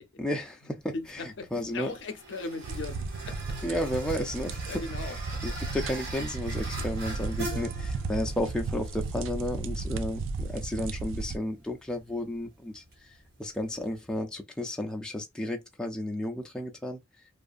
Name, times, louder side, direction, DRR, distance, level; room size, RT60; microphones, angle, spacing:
voice 1, 0.2-1.9 3.6-5.1 5.4-17.0, left 1 dB, 5° left, 0.3 m, -33 dB
sound 1, 0.8-14.2, right 1 dB, 55° right, 1.3 m, -44 dB
voice 2, 0.9-3.6 4.5-5.6 7.5-7.6, left 3 dB, 65° left, 0.5 m, -39 dB
sound 2, 2.6-11.4, right 3 dB, 80° right, 0.3 m, -35 dB
2.5 x 2.3 x 2.4 m
head